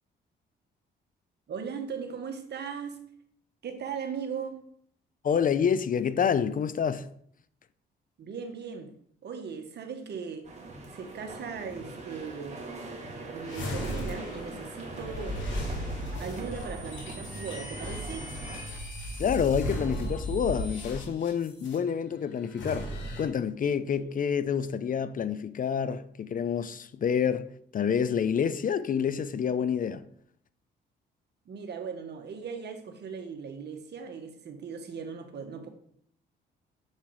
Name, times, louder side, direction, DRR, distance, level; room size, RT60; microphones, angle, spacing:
voice 1, 1.5-3.0 3.6-4.6 8.2-8.9 9.2-10.4 10.9-12.6 13.3-15.4 16.2-18.3 24.0-24.1 31.4-35.7, right 6 dB, 60° right, 1.6 m, -38 dB
voice 2, 5.2-7.1 19.2-30.1, left 7 dB, 45° left, 0.5 m, -28 dB
sound 1, 10.4-18.6, right 2 dB, 35° right, 2.5 m, -42 dB
sound 2, 13.5-21.8 22.5-23.2, equal, 70° left, 2.9 m, -36 dB
7.3 x 7.3 x 4.9 m
cardioid pair, 90°, 20 cm